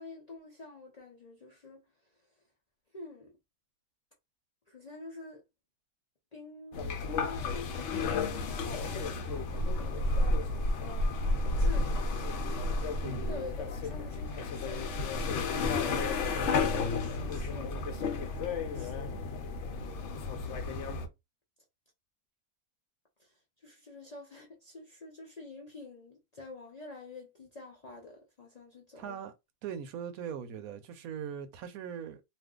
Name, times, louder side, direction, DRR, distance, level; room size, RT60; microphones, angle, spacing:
voice 1, 0.0-2.2 2.9-3.3 4.7-5.4 6.3-10.6 10.8-12.1 13.3-19.3 19.8-21.0 23.2-29.2, left 3 dB, 80° left, 0.3 m, -48 dB
sound 1, 6.7-21.1, left 3 dB, 65° left, 0.7 m, -32 dB
voice 2, 29.0-29.3 29.6-32.2, right 7 dB, 70° right, 1.0 m, -40 dB
2.5 x 2.5 x 3.5 m
omnidirectional pair, 1.7 m